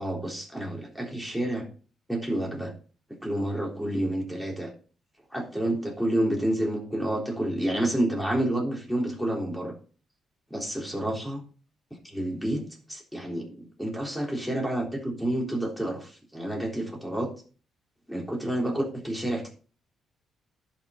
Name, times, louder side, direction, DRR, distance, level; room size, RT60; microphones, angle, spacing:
voice 1, 0.0-1.7 2.1-2.7 3.2-4.7 5.3-9.7 10.5-11.4 12.1-17.3 18.1-19.5, right 1 dB, ahead, 0 dB, 3.7 m, -29 dB
10.5 x 6.1 x 5.1 m, 0.39 s
cardioid pair, 90°, 0 cm